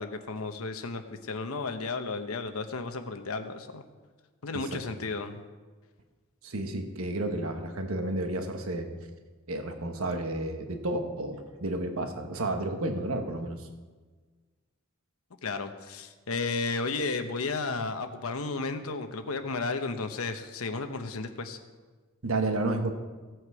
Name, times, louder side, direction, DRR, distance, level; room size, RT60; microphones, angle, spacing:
voice 1, 0.0-3.8 4.4-5.4 15.4-21.6, left 3 dB, 85° left, 8 dB, 1.0 m, -33 dB
voice 2, 6.4-8.9 9.5-13.7 22.2-23.0, right 2 dB, 75° right, 5 dB, 1.2 m, -31 dB
15.5 x 7.9 x 4.8 m, 1.4 s
head